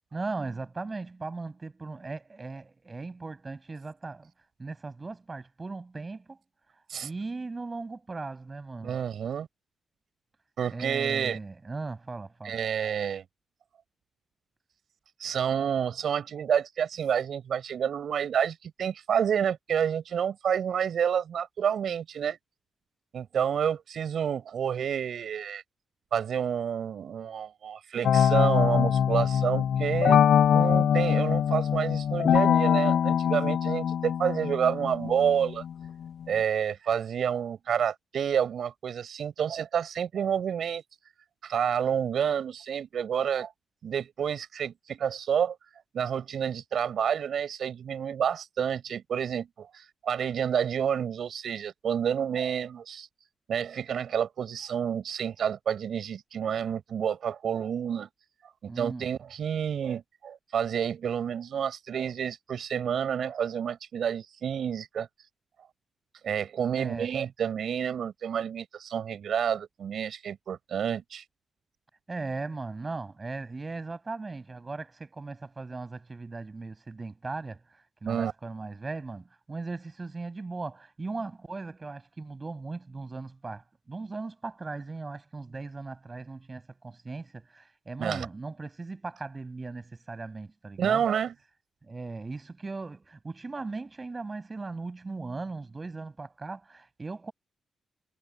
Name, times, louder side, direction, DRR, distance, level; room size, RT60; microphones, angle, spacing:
voice 1, 0.1-4.3 4.6-6.4 7.0-9.0 10.7-12.6 58.7-59.1 66.8-67.1 72.1-91.1 91.8-97.3, right 3 dB, 20° right, 7.9 m, -38 dB
voice 2, 8.8-9.5 10.6-11.4 12.4-13.2 15.2-22.4 23.1-25.6 26.1-30.2 30.5-35.6 36.3-40.8 41.4-43.5 43.8-45.6 45.9-53.1 53.5-58.1 58.6-65.1 66.2-71.2 78.0-78.3 88.0-88.3 90.8-91.3, right 8 dB, 60° right, 6.1 m, -29 dB
sound 1, 28.0-36.2, left 8 dB, 70° left, 0.7 m, -23 dB
wide cardioid pair, 155°, 0 cm